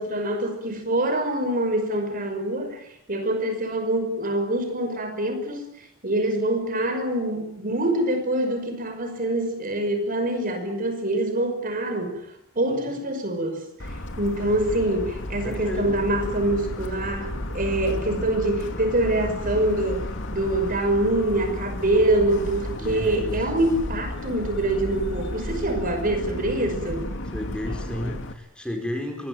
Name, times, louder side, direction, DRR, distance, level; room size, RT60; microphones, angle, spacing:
voice 1, 0.0-2.8 3.1-5.6 6.0-12.2 12.6-27.1, right 1 dB, 40° right, 7 dB, 5.8 m, -25 dB
voice 2, 12.7-13.0 15.4-16.1 22.8-23.7 27.3-29.3, left 1 dB, 5° left, 4 dB, 4.5 m, -33 dB
Motor vehicle (road) / Siren, 13.8-28.3, left 1 dB, 60° left, 2.7 m, -33 dB
24.0 x 21.0 x 9.2 m, 0.78 s
head